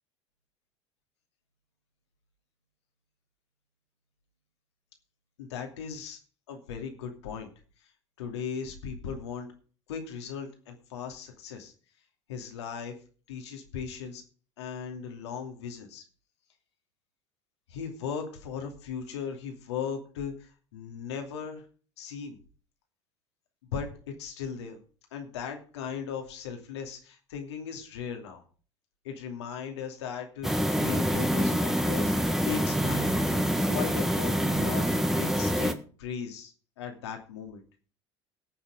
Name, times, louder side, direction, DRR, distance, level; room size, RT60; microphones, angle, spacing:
voice 1, 5.4-6.2 6.5-7.5 8.2-9.5 9.9-11.7 12.3-13.0 13.3-14.2 14.6-16.0 17.7-21.6 22.0-22.4 23.7-23.9 24.2-24.8 25.1-28.4 29.0-34.9 35.2-37.6, left 7 dB, 75° left, 4 dB, 2.7 m, -37 dB
sound 1, 30.4-35.7, equal, 5° right, 1.5 m, -26 dB
17.5 x 6.8 x 5.0 m, 0.39 s
hypercardioid pair, 70°, 15 cm